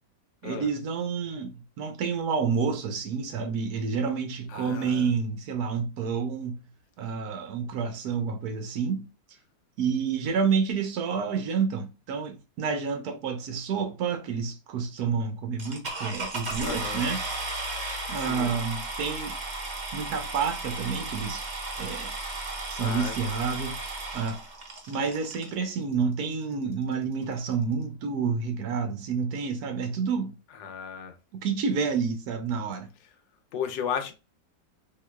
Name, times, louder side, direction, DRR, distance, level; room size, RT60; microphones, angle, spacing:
voice 1, 0.4-6.6 7.0-9.0 9.8-17.2 18.1-19.4 19.9-21.4 21.8-22.1 22.7-23.8 24.1-24.4 24.9-30.3 31.3-32.9, right 5 dB, 70° right, 0.9 m, -29 dB
voice 2, 4.5-5.1 16.6-17.1 18.2-18.6 22.8-23.3 30.5-31.2 33.5-34.1, left 7 dB, 70° left, 1.3 m, -34 dB
sound 1, 15.6-25.5 26.3-26.4 26.9-27.0 27.2-27.5, right 2 dB, 45° right, 0.6 m, -35 dB
3.7 x 3.0 x 2.2 m
omnidirectional pair, 2.1 m